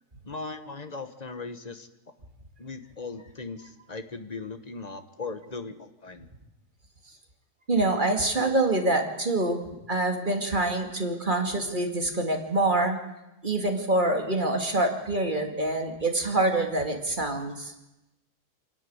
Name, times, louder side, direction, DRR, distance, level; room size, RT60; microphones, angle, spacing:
voice 1, 0.2-1.9 2.6-6.3, left 3 dB, 30° left, 9 dB, 1.1 m, -38 dB
voice 2, 7.7-13.0 13.4-17.7, right 2 dB, 30° right, 4 dB, 2.3 m, -26 dB
26.5 x 10.5 x 9.5 m, 0.97 s
omnidirectional pair, 1.8 m